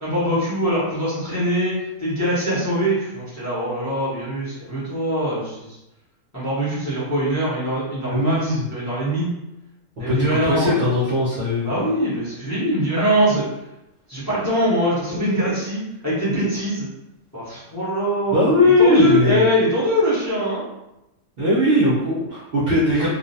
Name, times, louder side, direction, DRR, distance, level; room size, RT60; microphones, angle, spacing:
voice 1, 0.0-1.7 2.0-5.8 6.3-9.3 10.0-10.8 11.6-13.4 14.1-16.9 17.3-20.6, equal, 15° left, -10 dB, 0.7 m, -22 dB
voice 2, 8.0-8.6 10.1-11.7 18.3-19.4 21.4-23.1, left 1 dB, 55° right, -9 dB, 0.7 m, -19 dB
2.5 x 2.1 x 2.6 m, 0.91 s
omnidirectional pair, 1.5 m